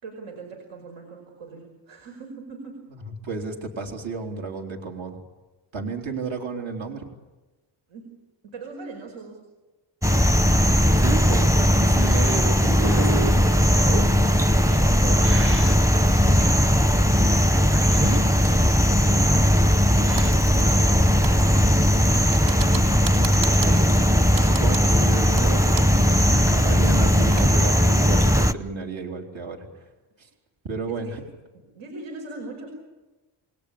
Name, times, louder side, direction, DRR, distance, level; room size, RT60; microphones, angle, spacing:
voice 1, 0.0-2.9 7.9-9.4 14.5-15.5 16.9-17.5 20.0-21.9 30.2-30.4 30.9-31.2 31.5-32.7, right 4 dB, 85° right, 3 dB, 5.3 m, -41 dB
voice 2, 3.2-5.2 5.7-7.0 11.0-13.6 23.2-29.9 30.2-30.3 30.6-31.2, right 4 dB, 70° right, 2 dB, 3.8 m, -32 dB
sound 1, 10.0-28.5, left 1 dB, 5° right, 0.8 m, -18 dB
sound 2, 11.9-20.3, right 4 dB, 25° right, 1.0 m, -35 dB
Typing, 20.2-21.0 21.2-26.1 26.3-26.4 26.9-27.5, right 5 dB, 40° right, 3.5 m, -36 dB
28.0 x 20.0 x 8.6 m, 1.1 s
cardioid pair, 120°, 48 cm